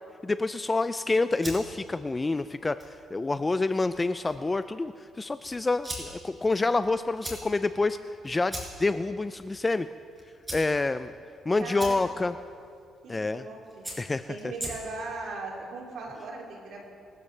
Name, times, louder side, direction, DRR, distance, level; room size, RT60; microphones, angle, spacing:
voice 1, 0.2-2.8 3.1-9.9 10.5-11.1 11.5-12.3 13.1-13.4 14.0-14.3, left 3 dB, 20° left, 12 dB, 0.4 m, -27 dB
sound 1, 1.0-15.2, right 1 dB, 20° right, 5.0 m, -44 dB
voice 2, 11.6-12.0 13.0-13.9 14.3-16.8, right 3 dB, 75° right, -3 dB, 4.1 m, -38 dB
24.5 x 13.5 x 3.4 m, 2.3 s
cardioid pair, 90°, 0 cm